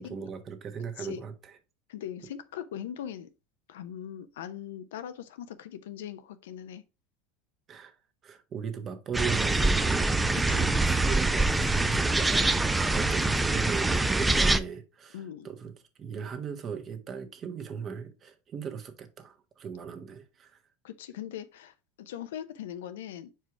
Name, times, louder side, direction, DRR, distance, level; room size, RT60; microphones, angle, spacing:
voice 1, 0.0-1.6 7.7-7.9 8.2-15.7 16.0-20.6, right 6 dB, 35° right, 1.2 m, -38 dB
voice 2, 1.9-3.3 3.7-6.8 10.5-10.7 15.1-15.5 20.8-23.3, left 10 dB, 90° left, 0.7 m, -40 dB
sound 1, 9.1-14.6, right 2 dB, 10° right, 0.5 m, -25 dB
4.6 x 4.6 x 4.5 m
supercardioid pair, 110°, 0 cm